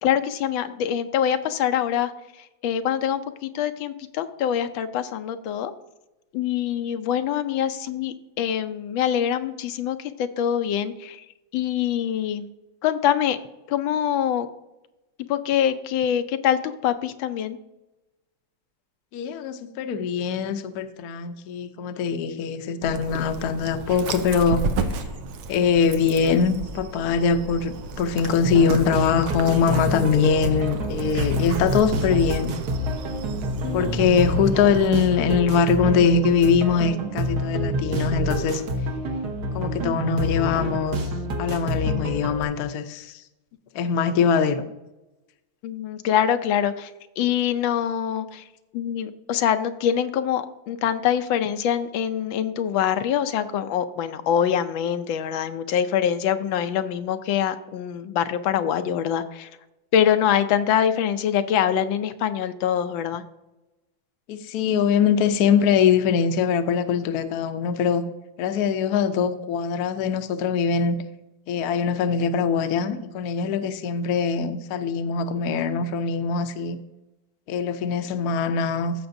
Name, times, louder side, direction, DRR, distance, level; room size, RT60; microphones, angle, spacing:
voice 1, 0.0-2.1 2.4-5.7 6.3-11.2 11.5-12.5 12.8-13.4 13.7-14.5 15.3-17.6 33.6-33.9 45.6-48.4 48.7-59.5 59.9-63.2, left 9 dB, 80° left, 10 dB, 1.3 m, -24 dB
voice 2, 19.1-24.6 25.5-32.5 33.7-38.6 39.5-41.0 41.4-43.2 43.7-44.7 64.3-68.0 68.4-71.0 71.5-76.8 77.5-78.9, left 6 dB, 65° left, 9 dB, 1.0 m, -22 dB
Dog, 22.8-34.9, right 3 dB, 90° right, 1.6 m, -33 dB
sound 1, 28.4-42.4, equal, 60° right, 1.5 m, -28 dB
15.0 x 6.0 x 2.6 m, 0.96 s
omnidirectional pair, 2.1 m